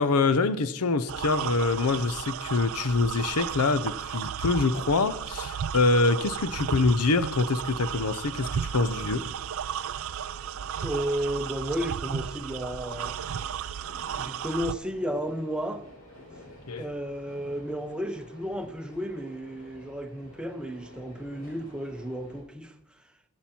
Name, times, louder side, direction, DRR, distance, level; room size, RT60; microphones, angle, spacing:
voice 1, 0.0-9.3 16.7-16.9, left 3 dB, 85° left, 0.7 m, -25 dB
sound 1, 1.1-14.7, right 8 dB, 65° right, 0.4 m, -34 dB
sound 2, 8.6-22.4, left 1 dB, 65° left, 5.8 m, -51 dB
voice 2, 10.8-13.6 14.2-15.8 16.8-22.7, equal, 5° right, 0.8 m, -33 dB
22.0 x 7.7 x 4.4 m
head